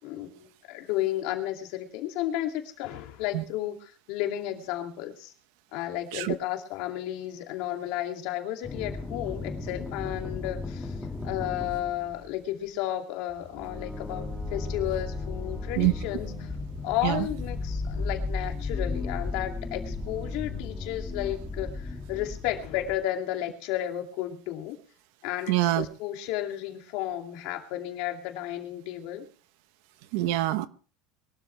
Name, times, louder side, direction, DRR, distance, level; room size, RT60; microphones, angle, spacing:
voice 1, 0.0-5.3 5.7-10.9 11.2-16.5 16.8-24.8 25.2-29.2, left 13 dB, 55° left, 2.6 m, -33 dB
sound 1, 8.6-12.3 13.3-22.9, left 3 dB, 5° left, 2.1 m, -35 dB
voice 2, 25.5-25.9 30.1-30.7, right 16 dB, 60° right, 1.0 m, -25 dB
22.5 x 12.5 x 3.4 m
cardioid pair, 170°, 0 cm